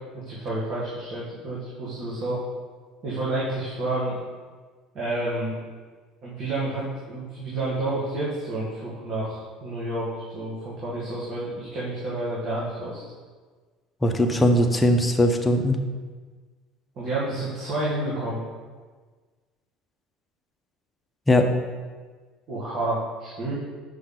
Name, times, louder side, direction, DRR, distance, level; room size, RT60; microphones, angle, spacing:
voice 1, 0.1-2.4 3.0-4.2 4.9-5.6 6.2-13.0 16.9-18.4 22.5-23.5, right 2 dB, 45° right, -8 dB, 1.8 m, -29 dB
voice 2, 14.0-15.8 21.3-21.5, left 1 dB, 10° left, 4 dB, 0.7 m, -20 dB
6.0 x 5.6 x 3.9 m, 1.4 s
supercardioid pair, 120°, 0 cm